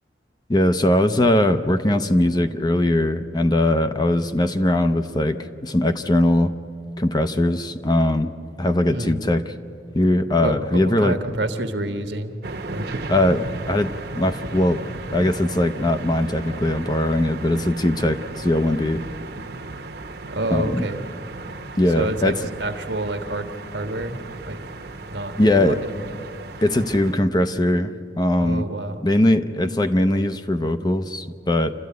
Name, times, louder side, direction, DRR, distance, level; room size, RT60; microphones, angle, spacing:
voice 1, 0.5-6.5 7.0-9.4 9.9-11.2 13.1-14.8 15.1-19.0 20.5-20.9 21.8-22.4 25.4-25.8 26.6-28.7 29.0-31.7, left 1 dB, 20° left, 9 dB, 0.6 m, -20 dB
voice 2, 8.9-9.2 10.4-12.4 12.7-12.9 20.3-21.0 21.9-24.2 24.4-24.6 25.1-25.4 25.7-26.1 28.4-29.0, right 1 dB, 75° right, 8 dB, 1.4 m, -28 dB
sound 1, 12.4-27.1, right 3 dB, 55° right, 1.1 m, -35 dB
27.5 x 13.5 x 9.4 m, 2.5 s
head